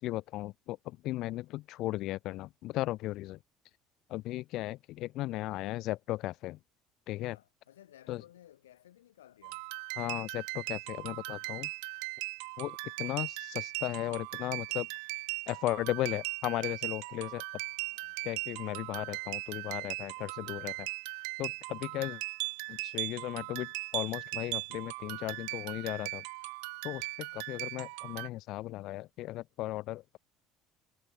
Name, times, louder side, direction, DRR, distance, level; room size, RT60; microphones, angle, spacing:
voice 1, 0.0-3.4 4.1-6.6 7.1-7.4 8.1-8.2 10.0-11.7 12.6-14.9 15.5-17.4 18.2-20.9 21.4-22.2 22.7-26.2 26.8-30.2, left 17 dB, 65° left, 1.4 m, -36 dB
voice 2, 7.2-9.6 17.8-18.2 21.4-21.6, left 12 dB, 90° left, 7.0 m, -58 dB
sound 1, 9.4-28.3, right 40 dB or more, 75° right, 0.8 m, -39 dB
hypercardioid pair, 70°, 0 cm